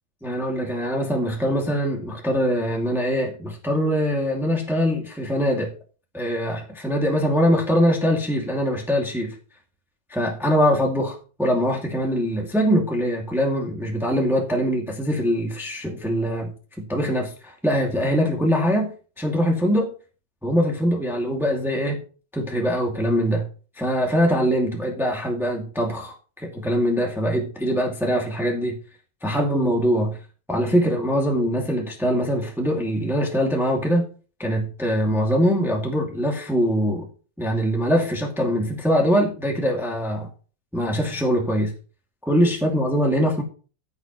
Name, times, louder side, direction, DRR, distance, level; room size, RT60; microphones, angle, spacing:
voice 1, 0.2-5.7 6.1-9.4 10.1-16.5 16.8-19.9 20.4-22.0 22.3-23.5 23.8-28.8 29.2-30.2 30.5-34.0 34.4-37.1 37.4-40.3 40.7-41.7 42.3-43.4, equal, ahead, -1 dB, 2.2 m, -23 dB
15.5 x 8.2 x 3.1 m, 0.38 s
omnidirectional pair, 2.1 m